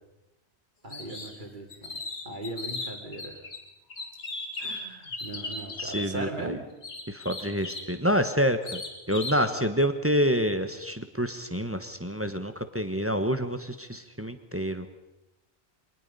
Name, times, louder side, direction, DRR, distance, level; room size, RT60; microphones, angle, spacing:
voice 1, 0.8-2.0 2.2-3.4 4.6-6.7, right 2 dB, 45° right, 3 dB, 2.8 m, -38 dB
sound 1, 0.9-1.4 1.7-3.6 3.9-6.1 6.8-7.9 8.6-9.4, left 3 dB, 90° left, 2.5 m, -37 dB
voice 2, 5.8-6.6 7.1-8.8 9.1-14.8, equal, 15° right, 9 dB, 1.1 m, -27 dB
24.5 x 19.5 x 5.5 m, 1.0 s
omnidirectional pair, 1.1 m